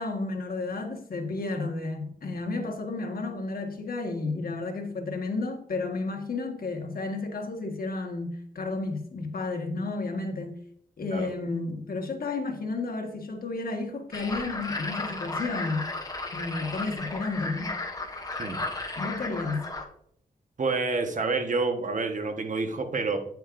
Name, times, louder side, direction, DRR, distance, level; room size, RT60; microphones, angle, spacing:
voice 1, 0.0-10.6 11.0-15.8 16.3-17.7 18.9-19.7, left 3 dB, 70° left, 1.6 m, -32 dB
sound 1, 14.1-19.8, left 2 dB, 25° left, 1.3 m, -34 dB
voice 2, 20.6-23.2, right 3 dB, 55° right, 1.3 m, -28 dB
9.5 x 7.8 x 2.6 m
wide cardioid pair, 90°, 16 cm